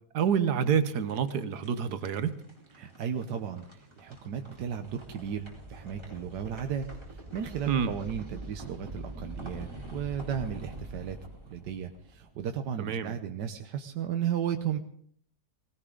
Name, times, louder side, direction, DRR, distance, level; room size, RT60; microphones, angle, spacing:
voice 1, 0.1-2.3 7.7-7.9 12.8-13.2, right 7 dB, 70° right, 12 dB, 1.5 m, -27 dB
sound 1, 0.8-12.8, right 1 dB, 15° right, 4.2 m, -45 dB
voice 2, 2.8-11.2 11.5-14.8, right 8 dB, 90° right, 6 dB, 1.5 m, -35 dB
19.5 x 17.5 x 3.9 m, 0.63 s
omnidirectional pair, 1.8 m